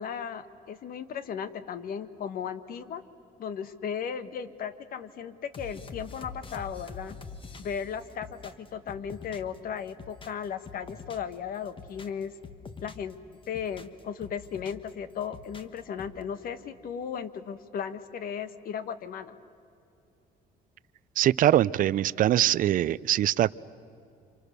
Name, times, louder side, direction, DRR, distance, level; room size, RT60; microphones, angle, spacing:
voice 1, 0.0-3.0 3.4-7.2 7.6-12.3 12.8-13.2 13.5-19.3, left 7 dB, 60° left, 12 dB, 1.4 m, -36 dB
sound 1, 5.5-9.6 9.9-11.3 11.7-13.1 13.4-14.9 15.2-16.2, left 4 dB, 30° left, 1.5 m, -45 dB
voice 2, 21.2-23.5, right 12 dB, 55° right, 19 dB, 0.5 m, -23 dB
29.5 x 27.0 x 6.8 m, 2.6 s
cardioid pair, 110°, 17 cm